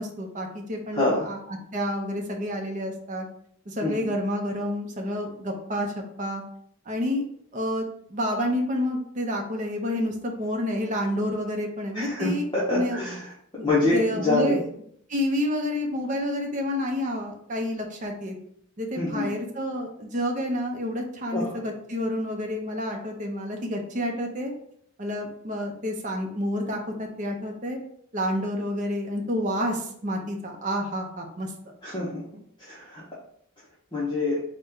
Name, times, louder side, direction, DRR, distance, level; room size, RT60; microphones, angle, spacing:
voice 1, 0.0-1.4 1.7-3.3 3.7-6.4 6.9-7.2 7.5-7.8 8.1-12.4 12.7-13.0 13.6-14.6 15.1-18.4 18.8-24.5 25.0-27.8 28.1-31.5, left 1 dB, 35° right, 2 dB, 0.6 m, -29 dB
voice 2, 0.9-1.3 3.8-4.1 11.9-13.3 13.6-14.6 18.9-19.3 21.3-21.6 31.8-32.2 32.6-33.0 33.9-34.4, left 2 dB, 20° left, -8 dB, 0.8 m, -26 dB
4.0 x 2.2 x 3.7 m, 0.67 s
head